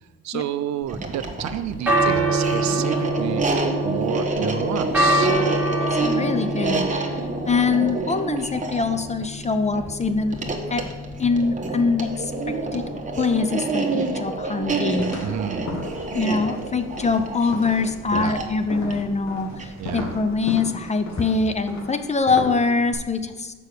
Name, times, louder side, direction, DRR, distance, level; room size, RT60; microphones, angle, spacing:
voice 1, 0.2-5.3 15.2-15.7 18.1-18.4 19.8-20.1, right 10 dB, 65° right, 13 dB, 0.5 m, -30 dB
sound 1, 0.8-20.1, right 3 dB, 25° right, 1.1 m, -28 dB
sound 2, 1.7-20.6, right 1 dB, 5° right, 1.7 m, -28 dB
voice 2, 5.8-10.4 10.7-10.8 11.2-12.9 13.2-15.2 16.1-23.5, left 4 dB, 25° left, 9 dB, 0.6 m, -24 dB
sound 3, 15.0-22.9, left 2 dB, 65° left, 1.6 m, -35 dB
6.4 x 5.3 x 6.6 m, 1.3 s
cardioid pair, 90°, 30 cm